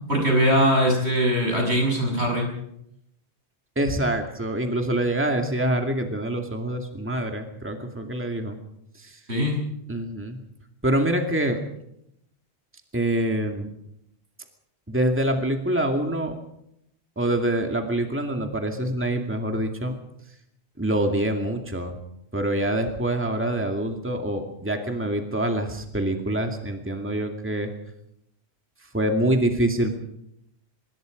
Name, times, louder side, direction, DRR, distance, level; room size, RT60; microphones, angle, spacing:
voice 1, 0.1-2.5 9.3-9.6, equal, 80° right, 1 dB, 7.4 m, -21 dB
voice 2, 3.8-8.6 9.0-9.2 9.9-10.4 10.8-11.6 12.9-13.7 14.9-16.4 17.2-19.9 20.8-22.0 22.3-27.7 28.9-30.0, right 1 dB, 10° right, 4 dB, 2.3 m, -25 dB
25.5 x 21.5 x 5.2 m, 0.78 s
omnidirectional pair, 1.1 m